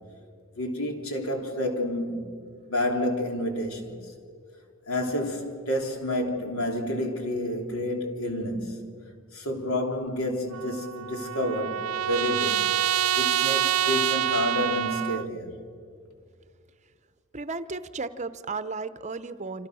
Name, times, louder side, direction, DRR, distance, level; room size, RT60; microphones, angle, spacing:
voice 1, 0.5-4.1 4.9-8.9 9.3-12.7 13.1-15.6, left 1 dB, 85° left, 3.4 m, -29 dB
Trumpet, 10.5-15.3, right 11 dB, 90° right, 0.6 m, -26 dB
voice 2, 17.3-19.7, right 3 dB, 35° right, 0.7 m, -34 dB
28.0 x 26.5 x 6.3 m
head